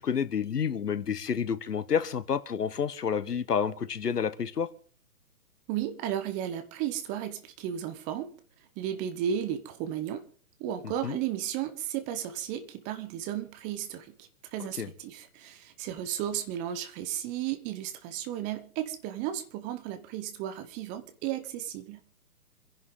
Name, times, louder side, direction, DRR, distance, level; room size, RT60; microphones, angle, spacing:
voice 1, 0.0-4.7 11.0-11.2 14.8-14.9, left 7 dB, 70° left, 1.6 m, -29 dB
voice 2, 5.7-8.3 8.8-10.2 10.6-22.0, right 10 dB, 15° right, 1.0 m, -34 dB
27.0 x 11.0 x 4.0 m
hypercardioid pair, 140°, 48 cm